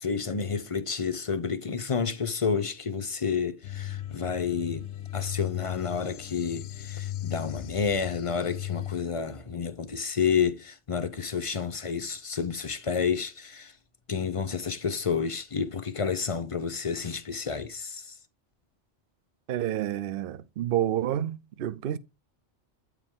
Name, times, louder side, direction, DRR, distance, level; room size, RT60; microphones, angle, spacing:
voice 1, 0.0-4.9 5.1-13.7 14.1-18.1, left 6 dB, 40° left, 0.5 m, -30 dB
sound 1, 3.6-9.0, left 12 dB, 75° left, 0.9 m, -37 dB
voice 2, 19.5-22.0, right 11 dB, 60° right, 0.6 m, -29 dB
8.8 x 4.8 x 3.6 m
omnidirectional pair, 1.2 m